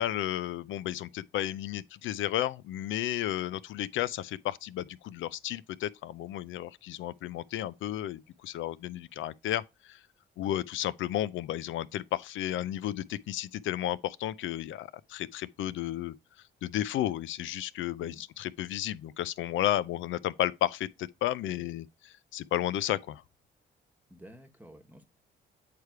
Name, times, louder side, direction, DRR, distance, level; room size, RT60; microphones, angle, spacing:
voice 1, 0.0-10.0 10.4-16.1 16.6-23.2, left 13 dB, 75° left, 0.4 m, -33 dB
voice 2, 24.1-25.0, equal, 10° right, 1.2 m, -51 dB
8.1 x 3.3 x 4.6 m
cardioid pair, 90°, 20 cm